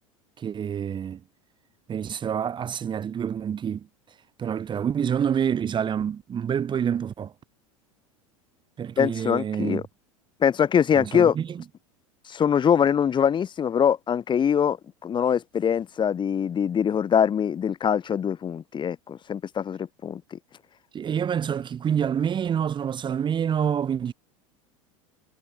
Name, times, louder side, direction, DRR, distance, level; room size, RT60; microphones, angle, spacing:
voice 1, 0.4-1.2 1.9-3.9 4.4-7.3 8.8-9.8 10.9-11.6 20.9-24.1, right 8 dB, 25° right, 2.9 m, -27 dB
voice 2, 9.0-9.8 10.4-11.4 12.3-14.8 15.0-20.4, left 8 dB, 25° left, 3.7 m, -23 dB
figure-of-eight pair, 80°, 18 cm